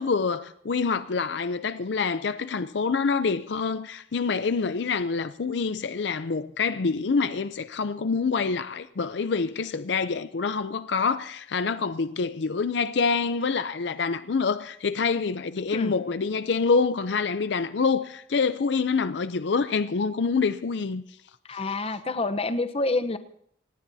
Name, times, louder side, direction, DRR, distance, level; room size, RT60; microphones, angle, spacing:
voice 1, 0.0-21.0, left 5 dB, 65° left, 0.5 m, -26 dB
voice 2, 21.5-23.2, left 2 dB, 30° left, 0.8 m, -27 dB
27.0 x 18.0 x 2.7 m
head